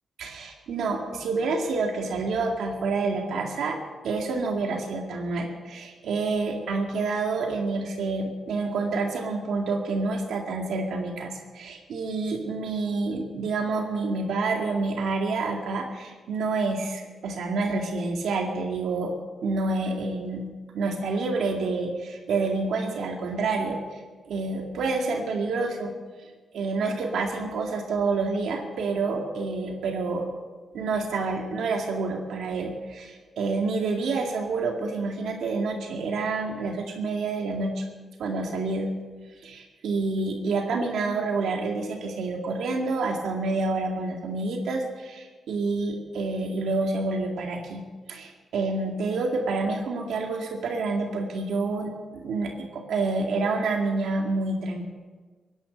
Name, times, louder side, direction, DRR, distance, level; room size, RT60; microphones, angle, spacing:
voice 1, 0.2-3.8 4.0-19.1 19.4-20.5 20.7-25.9 26.5-30.3 30.7-37.8 38.2-38.9 39.4-47.8 48.1-51.9 52.2-54.8, right 3 dB, 80° right, 1 dB, 2.2 m, -28 dB
24.0 x 10.5 x 5.3 m, 1.4 s
wide cardioid pair, 170°, 0 cm